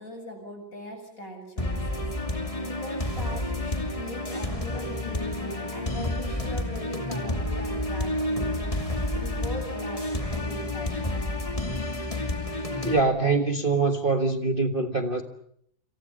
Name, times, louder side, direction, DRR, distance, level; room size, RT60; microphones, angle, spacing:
voice 1, 0.0-11.1, left 1 dB, 45° left, 8.3 m, -41 dB
sound 1, 1.6-13.0, left 1 dB, 15° left, 2.7 m, -30 dB
voice 2, 12.8-15.2, right 3 dB, 30° right, 1.6 m, -24 dB
29.0 x 27.5 x 5.3 m
omnidirectional pair, 2.1 m